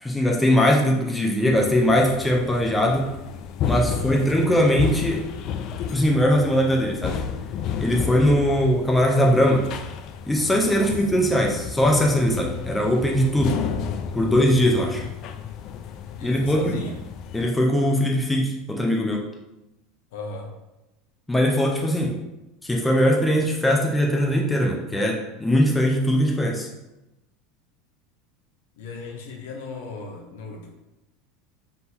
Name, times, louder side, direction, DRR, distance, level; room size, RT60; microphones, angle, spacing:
voice 1, 0.0-3.1 3.7-5.3 5.9-7.2 7.8-9.7 10.3-13.6 14.1-15.0 16.2-16.8 17.3-19.2 21.3-22.1 22.6-26.7, equal, 10° left, -1 dB, 0.6 m, -21 dB
sound 1, 1.5-17.5, left 7 dB, 50° left, 0.3 m, -32 dB
voice 2, 3.8-4.2 8.3-8.6 10.7-11.0 16.2-17.0 20.1-20.5 28.8-30.7, left 3 dB, 75° left, 1 dB, 0.9 m, -37 dB
3.7 x 2.7 x 4.1 m, 0.97 s
supercardioid pair, 105°, 0 cm